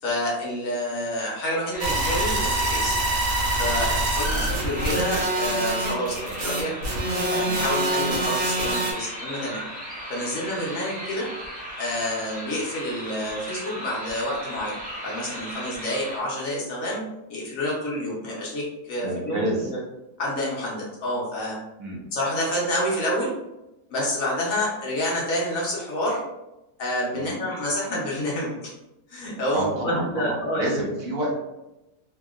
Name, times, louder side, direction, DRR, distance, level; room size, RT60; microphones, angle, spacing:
voice 1, 0.0-3.0 3.6-6.7 7.3-9.6 10.1-11.3 11.8-14.7 15.0-17.0 17.3-19.8 20.2-21.6 22.1-23.3 23.9-26.2 26.8-28.7 29.1-30.7, left 1 dB, 55° left, -4 dB, 1.0 m, -28 dB
sound 1, 1.7-16.2, equal, 10° right, 0.3 m, -37 dB
sound 2, 1.8-8.9, right 1 dB, 80° right, 0.5 m, -25 dB
voice 2, 19.0-19.7 21.8-22.0 27.1-27.4 29.5-31.4, right 1 dB, 60° right, -3 dB, 1.0 m, -29 dB
2.8 x 2.6 x 2.4 m, 0.94 s
omnidirectional pair, 1.9 m